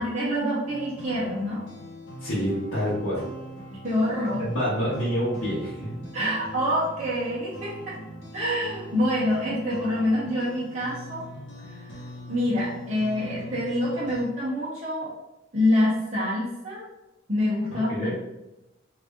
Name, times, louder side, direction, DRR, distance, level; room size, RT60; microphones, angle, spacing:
voice 1, 0.0-1.6 3.8-4.4 6.1-8.0 8.3-11.2 11.7-12.0 12.3-15.1 15.5-16.9 17.3-18.1, left 1 dB, 35° right, -9 dB, 0.8 m, -26 dB
sound 1, 0.7-14.3, equal, 60° left, 0.8 m, -42 dB
voice 2, 2.2-3.2 4.4-6.3 17.7-18.1, equal, 85° left, -9 dB, 0.9 m, -28 dB
3.2 x 2.5 x 3.4 m, 0.94 s
head